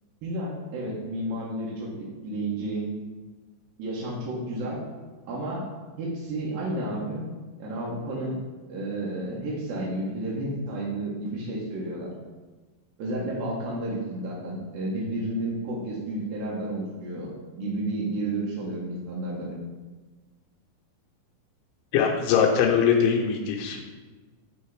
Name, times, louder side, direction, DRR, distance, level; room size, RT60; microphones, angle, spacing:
voice 1, 0.2-2.9 3.8-4.8 5.3-5.7 6.0-7.2 7.6-8.4 8.7-12.1 13.0-19.6, right 1 dB, 75° right, -6 dB, 2.1 m, -31 dB
voice 2, 21.9-23.8, left 7 dB, 85° left, 1 dB, 3.2 m, -22 dB
8.0 x 3.2 x 4.6 m, 1.3 s
omnidirectional pair, 5.4 m